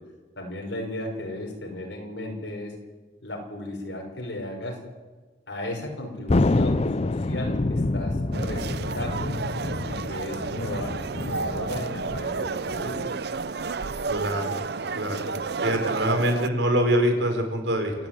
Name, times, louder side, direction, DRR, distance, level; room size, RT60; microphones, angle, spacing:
voice 1, 0.4-2.7 3.2-4.8 5.5-9.3 9.8-13.0, left 1 dB, 70° left, 1 dB, 6.1 m, -35 dB
Thunder, 6.3-13.1, left 2 dB, 35° left, 0.5 m, -27 dB
sound 1, 8.3-16.5, right 4 dB, 60° right, 0.7 m, -31 dB
voice 2, 14.1-14.5 14.9-15.3 15.6-17.9, right 1 dB, 85° right, 5 dB, 4.4 m, -24 dB
28.5 x 10.5 x 9.4 m, 1.3 s
head